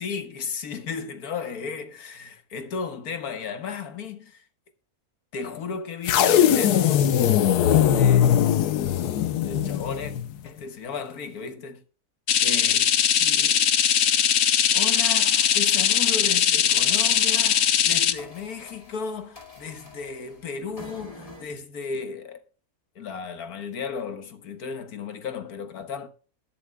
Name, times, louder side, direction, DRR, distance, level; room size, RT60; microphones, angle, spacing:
voice 1, 0.0-4.4 5.3-7.1 7.9-10.1 10.4-11.8 12.4-12.9 13.2-13.7 14.7-22.4 23.0-26.1, left 5 dB, 70° left, 1.8 m, -35 dB
sound 1, 6.0-10.3, left 10 dB, 90° left, 1.3 m, -20 dB
sound 2, 12.3-18.1, left 9 dB, 55° left, 0.9 m, -20 dB
sound 3, 13.3-16.4 16.7-21.4, left 3 dB, 20° left, 2.3 m, -43 dB
20.0 x 7.2 x 2.2 m
omnidirectional pair, 1.6 m